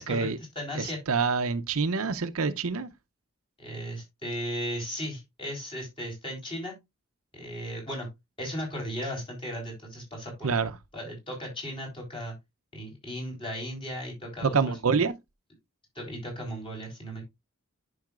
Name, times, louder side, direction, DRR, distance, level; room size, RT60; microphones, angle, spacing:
voice 1, 0.0-0.4 0.7-2.9 10.4-10.8 14.4-15.2, right 5 dB, 90° right, 0.7 m, -26 dB
voice 2, 0.6-1.0 3.6-6.8 7.3-8.1 8.4-10.5 10.9-12.3 12.7-14.5 16.0-17.2, equal, 25° left, 3.9 m, -36 dB
10.5 x 5.6 x 2.4 m
head